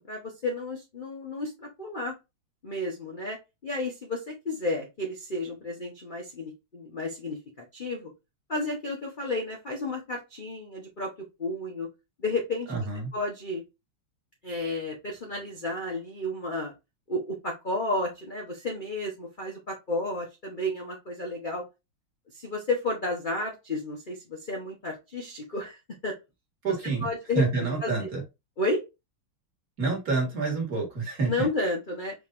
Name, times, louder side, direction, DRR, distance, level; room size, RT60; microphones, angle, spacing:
voice 1, 0.0-2.1 2.6-3.4 3.6-7.4 7.7-8.1 8.5-11.1 11.4-11.9 12.2-12.7 13.1-13.6 14.4-16.7 17.1-21.6 22.3-26.1 27.0-27.9 28.6-28.8 31.3-32.1, left 2 dB, 45° left, 0 dB, 0.6 m, -32 dB
voice 2, 12.7-13.1 26.6-27.1 27.3-28.2 29.8-31.5, right 4 dB, 45° right, 0 dB, 2.0 m, -28 dB
5.2 x 3.3 x 2.5 m, 0.24 s
omnidirectional pair, 2.3 m